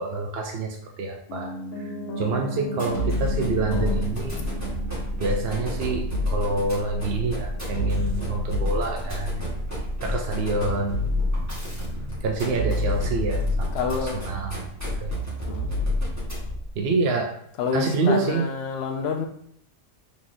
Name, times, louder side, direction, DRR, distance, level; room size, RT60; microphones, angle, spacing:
voice 1, 0.0-4.5 5.2-9.4 10.0-11.0 12.2-13.8 14.3-14.6 15.0-15.1 16.8-17.4 17.7-18.5, right 3 dB, 60° right, 2 dB, 0.7 m, -27 dB
Piano, 1.3-11.3 11.6-11.7, equal, 75° left, 1.3 m, -38 dB
sound 1, 2.7-16.7, left 1 dB, 10° right, 1.7 m, -28 dB
voice 2, 3.7-4.1 13.7-14.3 15.5-15.7 17.6-19.3, left 5 dB, 60° left, 4 dB, 0.8 m, -28 dB
4.0 x 3.1 x 3.7 m, 0.69 s
omnidirectional pair, 1.3 m